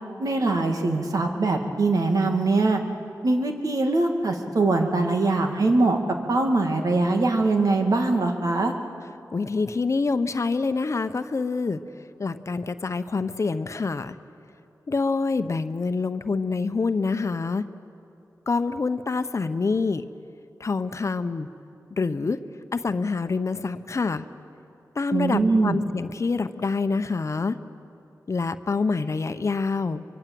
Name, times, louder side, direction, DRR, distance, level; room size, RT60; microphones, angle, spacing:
voice 1, 0.2-2.8 3.2-6.0 6.3-8.7 25.1-25.8, right 3 dB, 65° right, 3 dB, 2.3 m, -22 dB
voice 2, 9.3-11.8 12.2-14.2 14.9-17.6 18.5-20.0 20.6-21.5 21.9-22.4 22.7-24.2 24.9-27.6 28.3-30.0, left 4 dB, 50° left, 10 dB, 0.9 m, -26 dB
24.5 x 23.5 x 7.8 m, 2.6 s
cardioid pair, 65°, 6 cm